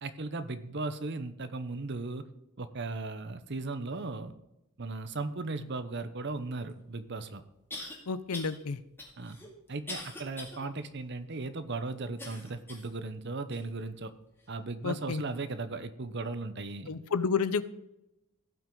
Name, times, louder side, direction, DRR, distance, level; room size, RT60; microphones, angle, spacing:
voice 1, 0.0-2.3 2.6-4.3 4.8-7.4 9.2-9.4 9.7-14.1 14.5-16.9, right 3 dB, 50° right, 11 dB, 0.8 m, -37 dB
sound 1, 6.7-6.8 7.7-8.0 8.3-8.6 9.0-10.6 11.0-11.1 12.2-12.9 13.5-13.6 14.4-14.5, left 2 dB, 10° left, 2.3 m, -42 dB
voice 2, 8.1-8.8 14.8-15.2 16.9-17.6, left 5 dB, 85° left, 15 dB, 0.7 m, -30 dB
17.0 x 6.0 x 3.9 m, 0.89 s
head